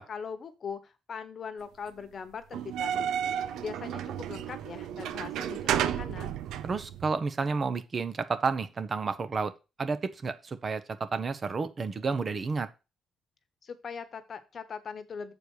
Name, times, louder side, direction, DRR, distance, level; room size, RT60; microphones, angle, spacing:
voice 1, 0.0-6.3 13.6-15.3, left 6 dB, 50° left, 10 dB, 1.1 m, -41 dB
sound 1, 2.5-7.1, right 10 dB, 85° right, 0.6 m, -32 dB
voice 2, 6.6-9.5 9.8-12.7, right 4 dB, 40° right, 12 dB, 0.9 m, -31 dB
6.9 x 4.6 x 6.4 m, 0.28 s
cardioid pair, 90°, 0 cm